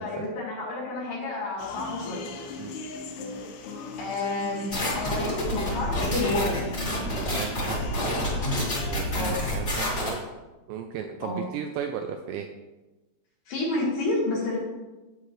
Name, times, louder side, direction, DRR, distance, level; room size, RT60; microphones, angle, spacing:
voice 1, 0.0-2.3 4.0-6.6 9.1-9.4 11.2-11.4 13.5-14.6, left 2 dB, 55° left, -4 dB, 3.3 m, -29 dB
sound 1, 1.6-9.0, left 4 dB, 85° left, 3.3 m, -39 dB
sound 2, 4.7-10.1, left 1 dB, 25° left, 2.8 m, -28 dB
voice 2, 7.0-8.2 8.9-10.2 10.7-12.5, right 8 dB, 85° right, 5 dB, 2.5 m, -35 dB
11.5 x 8.5 x 3.2 m, 1.1 s
omnidirectional pair, 5.5 m